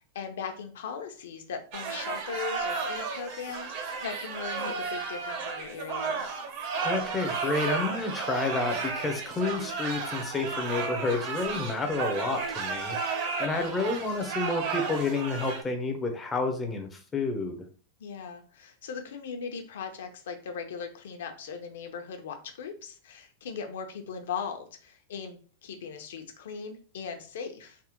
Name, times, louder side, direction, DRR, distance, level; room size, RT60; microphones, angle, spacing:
voice 1, 0.1-6.3 18.0-27.8, left 6 dB, 75° left, 5 dB, 0.7 m, -39 dB
sound 1, 1.7-15.6, right 5 dB, 40° right, 0.5 m, -33 dB
voice 2, 6.8-17.7, left 3 dB, 10° left, 4 dB, 0.4 m, -30 dB
3.4 x 2.1 x 2.9 m, 0.41 s
supercardioid pair, 175°, 0 cm